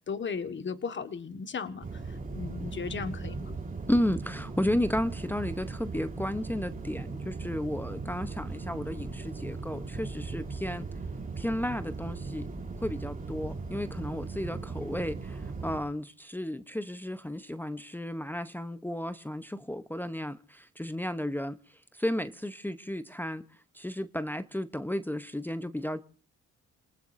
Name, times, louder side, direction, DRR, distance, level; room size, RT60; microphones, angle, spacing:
voice 1, 0.1-3.5, left 5 dB, 40° left, 1.5 m, -36 dB
sound 1, 1.8-15.8, right 3 dB, 25° right, 3.8 m, -38 dB
voice 2, 3.9-10.9 11.4-12.5 12.8-23.4 23.7-26.0, left 1 dB, 5° left, 0.8 m, -33 dB
28.0 x 19.5 x 2.6 m
cardioid pair, 90°, 30 cm